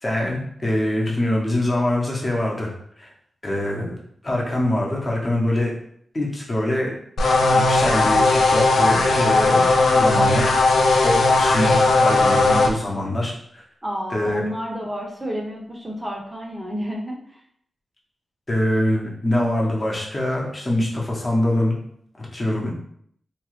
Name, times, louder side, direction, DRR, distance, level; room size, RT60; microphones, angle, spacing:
voice 1, 0.0-2.7 3.0-3.1 3.4-4.0 4.2-5.7 6.1-6.9 7.5-13.6 14.1-14.4 18.5-21.8 22.2-22.7, left 1 dB, 30° left, -3 dB, 0.8 m, -24 dB
sound 1, 7.2-12.7, left 2 dB, 90° left, 0.4 m, -17 dB
voice 2, 13.8-17.4, equal, 20° right, -2 dB, 0.6 m, -30 dB
2.9 x 2.3 x 3.1 m, 0.67 s
wide cardioid pair, 85°, 0 cm